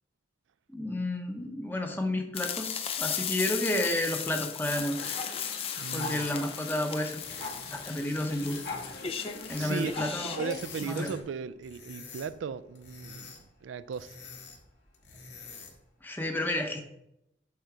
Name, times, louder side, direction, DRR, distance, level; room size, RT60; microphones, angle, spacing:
voice 1, 0.7-5.0 5.9-7.2 7.7-8.6 9.5-10.4 10.8-11.1 16.0-16.8, left 1 dB, 10° left, 0.8 m, -31 dB
sound 1, 2.3-10.8, left 8 dB, 30° left, 0.4 m, -36 dB
sound 2, 4.7-11.2, left 3 dB, 55° left, 1.4 m, -41 dB
voice 2, 5.8-6.3 9.6-9.9 10.3-13.3 13.6-14.2, right 6 dB, 80° right, 0.4 m, -36 dB
sound 3, 7.2-15.9, left 4 dB, 75° left, 1.8 m, -48 dB
8.6 x 3.9 x 4.7 m
head